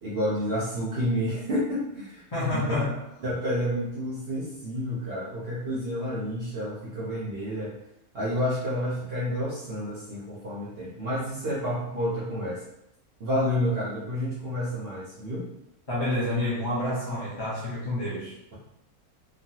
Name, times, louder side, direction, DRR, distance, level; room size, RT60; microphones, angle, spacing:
voice 1, 0.0-2.2 2.5-2.8 3.2-7.7 8.1-12.6 13.2-15.5, equal, 55° right, -6 dB, 0.7 m, -29 dB
voice 2, 2.3-3.0 15.9-18.5, left 1 dB, 25° left, -9 dB, 0.6 m, -29 dB
3.1 x 2.3 x 2.7 m, 0.82 s
omnidirectional pair, 1.6 m